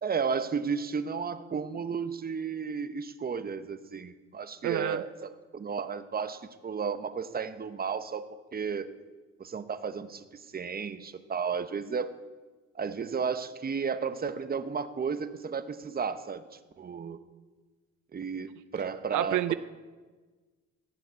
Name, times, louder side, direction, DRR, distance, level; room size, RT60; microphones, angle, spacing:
voice 1, 0.0-8.9 9.4-12.2 12.7-16.4 16.8-17.2 18.1-19.5, right 6 dB, 30° right, 12 dB, 0.9 m, -33 dB
voice 2, 4.6-5.0 19.1-19.5, right 14 dB, 80° right, 14 dB, 0.5 m, -29 dB
16.0 x 7.2 x 8.0 m, 1.4 s
cardioid pair, 90°, 30 cm